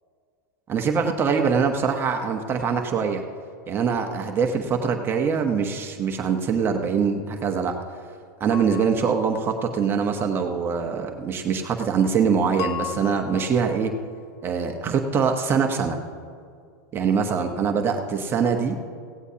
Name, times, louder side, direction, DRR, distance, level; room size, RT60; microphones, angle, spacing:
voice 1, 0.7-3.2 3.7-7.8 8.4-13.9 14.4-16.0 16.9-18.8, right 6 dB, 20° right, 3 dB, 1.0 m, -23 dB
sound 1, 8.5-9.6 12.6-14.0, left 10 dB, 50° left, 1.0 m, -36 dB
16.5 x 16.0 x 2.8 m, 2.2 s
supercardioid pair, 135°, 10 cm